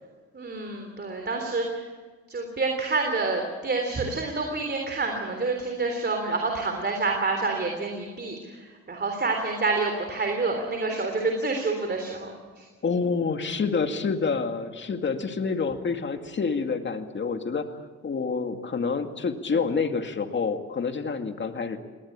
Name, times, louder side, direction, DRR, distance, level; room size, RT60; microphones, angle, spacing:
voice 1, 0.3-1.8 2.3-12.7, right 3 dB, 35° right, 3 dB, 3.5 m, -28 dB
voice 2, 12.8-17.7 18.0-21.8, left 5 dB, 40° left, 6 dB, 2.2 m, -28 dB
21.0 x 18.5 x 8.8 m, 1.4 s
cardioid pair, 90°, 30 cm